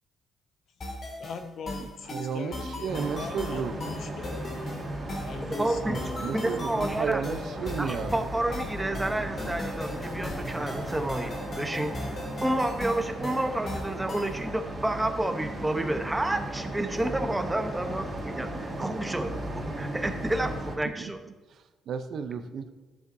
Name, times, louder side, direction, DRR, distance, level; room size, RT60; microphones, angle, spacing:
sound 1, 0.8-14.4, left 1 dB, 45° left, 2.3 m, -38 dB
voice 1, 1.2-4.7 5.2-7.8, left 5 dB, 65° left, 7 dB, 0.9 m, -42 dB
voice 2, 1.8-3.7 6.1-8.1 21.0-21.1 21.5-22.7, right 6 dB, 65° right, 9 dB, 0.7 m, -33 dB
sound 2, 2.9-20.8, right 1 dB, 30° right, 2.4 m, -36 dB
voice 3, 5.6-6.0 6.3-7.2 7.8-19.3 19.8-21.2, right 1 dB, 10° right, 6 dB, 0.9 m, -30 dB
13.0 x 7.2 x 2.7 m, 1.2 s
cardioid pair, 90°, 0 cm